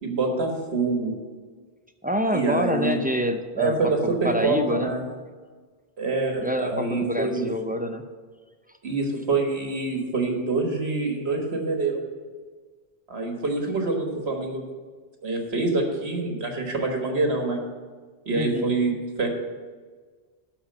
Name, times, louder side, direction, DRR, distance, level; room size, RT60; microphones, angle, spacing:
voice 1, 0.0-1.1 2.3-3.0 3.6-5.0 6.0-7.5 8.8-12.0 13.1-14.6 15.2-17.6 18.3-18.9 19.2-19.3, right 3 dB, 80° right, 2 dB, 1.8 m, -26 dB
voice 2, 2.0-4.9 6.4-8.1 18.3-18.7, equal, 10° right, 6 dB, 0.4 m, -27 dB
12.0 x 4.5 x 7.3 m, 1.5 s
omnidirectional pair, 1.1 m